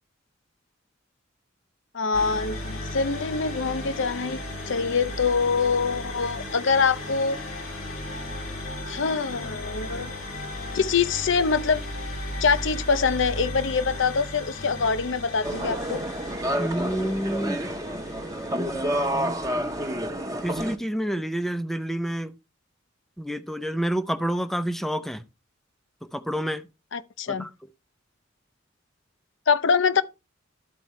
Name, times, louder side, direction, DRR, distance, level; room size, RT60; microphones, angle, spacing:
voice 1, 1.9-4.4 4.7-7.4 8.9-10.1 10.7-11.8 12.4-16.0 26.9-27.5 29.5-30.0, left 5 dB, 65° left, 0.6 m, -24 dB
sound 1, 2.1-19.9, left 1 dB, 90° left, 2.6 m, -36 dB
sound 2, 15.4-20.8, equal, 15° right, 0.8 m, -29 dB
voice 2, 16.6-17.6 20.4-22.3 23.2-25.2 26.1-26.6 27.3-27.5, equal, ahead, 0.5 m, -28 dB
13.0 x 4.5 x 3.1 m
head